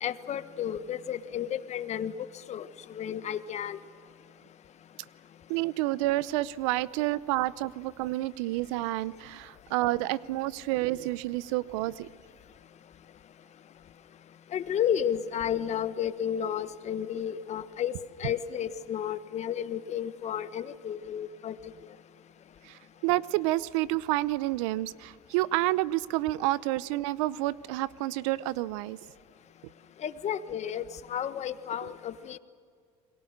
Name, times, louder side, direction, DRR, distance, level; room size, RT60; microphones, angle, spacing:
voice 1, 0.0-2.1 2.5-3.8 14.5-17.9 18.2-21.5 30.0-32.4, left 9 dB, 45° left, 12 dB, 1.3 m, -32 dB
voice 2, 5.5-12.1 23.0-29.0, right 17 dB, 75° right, 20 dB, 0.7 m, -29 dB
29.5 x 22.0 x 6.6 m, 2.2 s
supercardioid pair, 85°, 16 cm